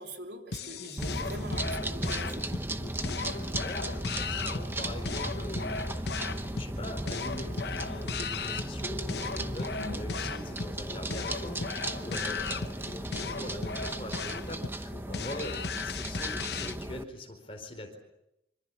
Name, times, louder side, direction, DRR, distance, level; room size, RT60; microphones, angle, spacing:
voice 1, 0.0-2.8 9.2-9.5 9.8-10.1 15.1-15.2, right 1 dB, 70° right, 3 dB, 3.5 m, -43 dB
sound 1, 0.5-16.8, left 5 dB, 60° left, 0.9 m, -37 dB
sound 2, 1.0-17.0, right 1 dB, 10° right, 0.9 m, -36 dB
voice 2, 3.6-6.1 6.5-18.0, left 1 dB, 30° left, 4 dB, 4.3 m, -42 dB
25.5 x 25.5 x 7.1 m, 0.86 s
head